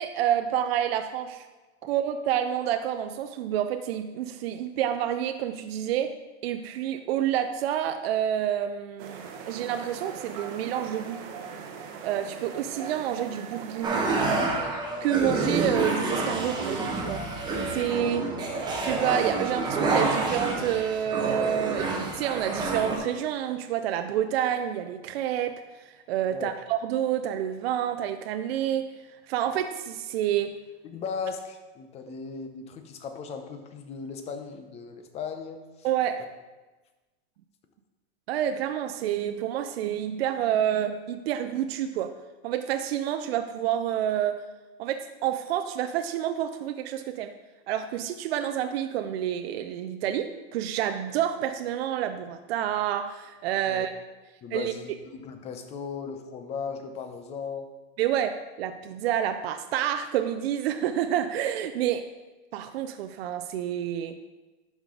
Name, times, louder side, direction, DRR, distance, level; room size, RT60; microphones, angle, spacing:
voice 1, 0.0-1.5 1.8-6.2 6.4-11.2 12.0-14.1 15.0-17.2 17.7-18.3 18.8-28.9 29.3-30.5 35.8-36.2 38.3-42.2 42.4-44.4 44.8-47.3 47.7-53.9 54.5-54.7 58.0-62.1 62.5-64.2, right 10 dB, 65° right, 8 dB, 0.6 m, -28 dB
sound 1, 9.0-14.3, right 5 dB, 45° right, 1.0 m, -40 dB
sound 2, 13.8-23.0, right 3 dB, 15° right, 0.9 m, -28 dB
voice 2, 30.8-35.9 53.7-53.8 54.4-57.7, left 5 dB, 20° left, 6 dB, 0.6 m, -37 dB
11.0 x 5.1 x 3.8 m, 1.2 s
supercardioid pair, 155°, 33 cm